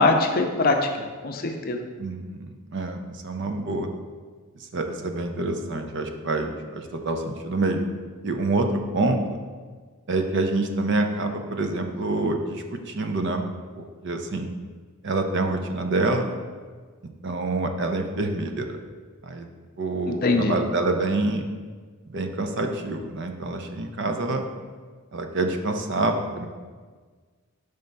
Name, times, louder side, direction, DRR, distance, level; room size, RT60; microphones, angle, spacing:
voice 1, 0.0-1.8 20.1-20.5, left 3 dB, 40° left, 4 dB, 0.5 m, -22 dB
voice 2, 2.0-3.9 4.7-7.9 8.2-9.4 10.1-13.5 13.8-14.5 15.0-16.3 17.2-18.8 19.2-19.5 19.8-21.4 22.1-24.5 25.1-26.5, right 2 dB, 55° right, 5 dB, 0.5 m, -27 dB
5.2 x 3.4 x 5.3 m, 1.5 s
head